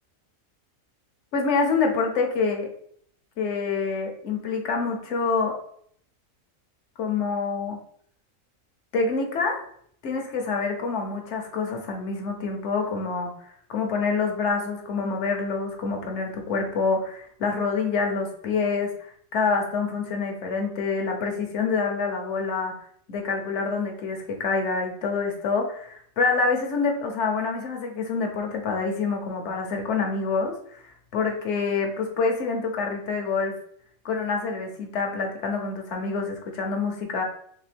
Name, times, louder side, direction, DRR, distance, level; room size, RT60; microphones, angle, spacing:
voice 1, 1.3-2.7 3.4-5.6 7.0-7.8 8.9-9.6 10.0-13.3 13.7-22.7 23.1-30.6 31.1-33.6 34.0-37.2, left 4 dB, 60° left, 3 dB, 1.1 m, -26 dB
3.7 x 3.2 x 3.4 m, 0.64 s
omnidirectional pair, 1.4 m